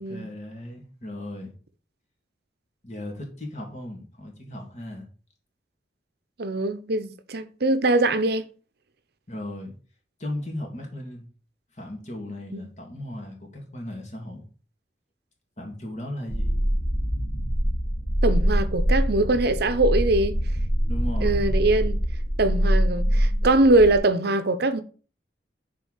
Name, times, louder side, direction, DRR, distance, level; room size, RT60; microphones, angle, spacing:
voice 1, 0.0-1.5 2.8-5.1 9.3-9.7 10.2-11.3 11.7-14.4 15.6-16.6 20.9-21.4, left 1 dB, 45° left, 2.9 m, -36 dB
voice 2, 6.4-8.5 12.5-12.6 18.2-20.4 21.2-22.0 22.4-24.8, right 2 dB, 65° right, 0.8 m, -22 dB
sound 1, 16.3-24.0, equal, 80° left, 3.0 m, -24 dB
6.7 x 4.9 x 6.5 m
head